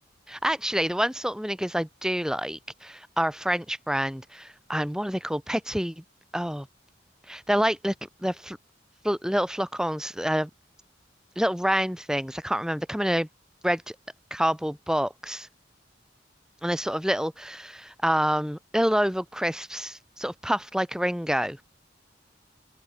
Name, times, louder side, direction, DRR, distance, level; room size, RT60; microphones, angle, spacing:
voice 1, 0.3-6.0 6.3-6.7 7.3-8.6 9.0-10.5 11.3-13.3 13.6-13.9 14.3-15.5 16.6-21.6, equal, 5° right, 3.3 m, -27 dB
open air
head